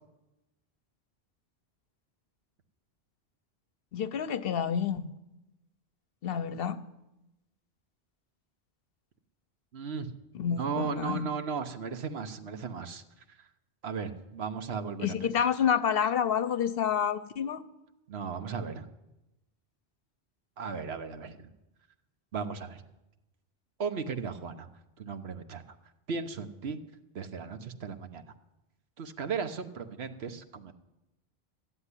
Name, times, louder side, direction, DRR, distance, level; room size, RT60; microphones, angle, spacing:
voice 1, 3.9-5.1 6.2-6.8 10.3-11.3 15.0-17.6, left 8 dB, 65° left, 14 dB, 0.9 m, -29 dB
voice 2, 9.7-10.1 10.5-13.0 13.3-13.5 13.8-15.3 18.1-18.8 20.6-21.5 22.3-22.8 23.8-24.7 25.0-25.6 26.1-26.8 27.1-28.2 29.0-30.7, right 5 dB, 75° right, 9 dB, 1.2 m, -36 dB
14.0 x 7.7 x 9.8 m, 0.96 s
omnidirectional pair, 1.1 m